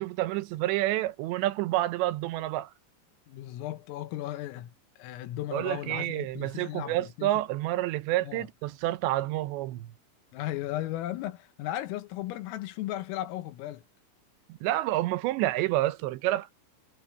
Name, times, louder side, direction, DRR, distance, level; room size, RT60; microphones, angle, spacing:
voice 1, 0.0-2.7 5.5-9.9 14.6-16.5, right 16 dB, 80° right, 2.6 m, -29 dB
voice 2, 3.3-7.3 8.2-8.5 10.3-13.8, left 14 dB, 85° left, 3.8 m, -36 dB
omnidirectional pair, 5.9 m